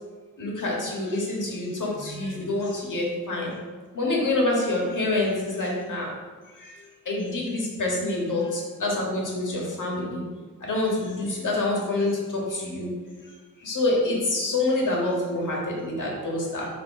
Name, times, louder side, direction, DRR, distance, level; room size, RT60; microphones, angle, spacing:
voice 1, 0.4-3.5 3.9-6.1 7.1-10.2 10.6-12.1 12.5-12.9 13.6-16.7, left 2 dB, 65° left, -3 dB, 1.7 m, -26 dB
6.8 x 3.1 x 5.8 m, 1.5 s
wide cardioid pair, 140°, 33 cm